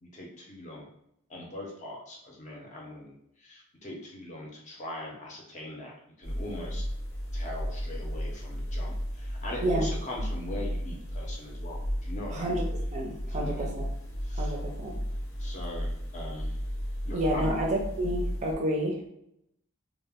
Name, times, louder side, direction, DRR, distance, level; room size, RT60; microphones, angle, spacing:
voice 1, 0.0-0.9 1.3-5.9 6.2-6.9 7.3-12.5 13.2-13.7 14.2-14.5 15.4-16.6 17.0-17.5, left 1 dB, 35° left, -2 dB, 0.6 m, -41 dB
sound 1, 6.2-18.5, equal, 70° left, 0.8 m, -34 dB
voice 2, 12.3-12.6 12.9-13.9 14.4-15.0 17.1-19.1, right 1 dB, 30° right, -1 dB, 0.4 m, -30 dB
2.1 x 2.1 x 3.4 m, 0.76 s
head